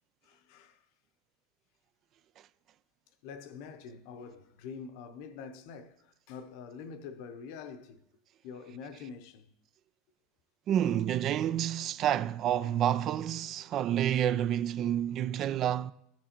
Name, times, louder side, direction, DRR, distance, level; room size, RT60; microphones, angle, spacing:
voice 1, 0.2-0.9 3.2-8.0 8.4-9.5 13.9-14.2, left 6 dB, 60° left, 0.7 m, -46 dB
voice 2, 10.7-15.9, right 10 dB, 45° right, 0.3 m, -29 dB
13.5 x 7.2 x 2.9 m
hypercardioid pair, 90°, 0 cm